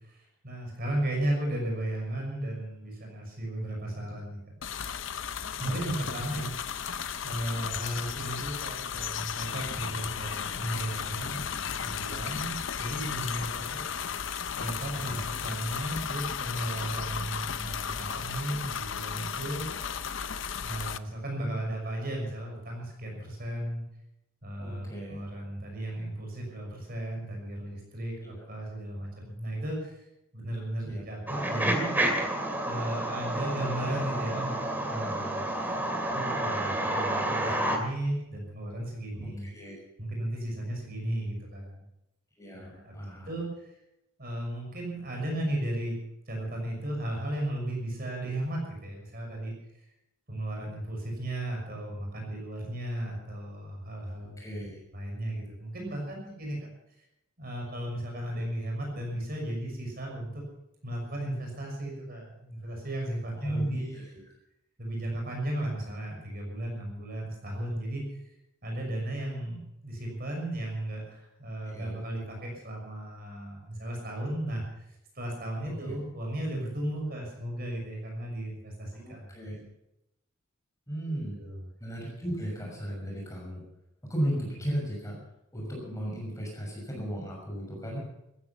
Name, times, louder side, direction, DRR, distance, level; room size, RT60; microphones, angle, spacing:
voice 1, 0.0-4.4 5.6-7.0 7.2-11.4 11.8-13.8 14.5-19.7 20.6-23.8 24.4-30.0 30.3-31.9 32.6-35.4 36.1-39.5 40.0-41.8 42.5-42.9 43.3-43.7 44.2-46.0 46.3-49.5 50.3-54.4 54.9-56.7 57.4-60.4 60.8-63.9 64.8-68.0 68.6-79.3 81.1-81.6, right 1 dB, 45° right, 1 dB, 6.1 m, -35 dB
sound 1, 4.6-21.0, left 7 dB, 60° left, 0.7 m, -35 dB
voice 2, 14.9-15.3 19.6-19.9 24.6-25.2 28.2-28.5 30.9-31.0 39.2-39.7 42.4-43.3 54.4-54.8 63.4-64.2 71.7-71.9 75.6-75.9 78.9-79.6 80.9-81.4 81.8-83.6 84.1-85.2 85.5-88.0, equal, 15° left, -2 dB, 6.3 m, -35 dB
sound 2, 31.3-37.8, right 1 dB, 10° right, 2.2 m, -30 dB
15.5 x 15.0 x 5.8 m, 0.86 s
head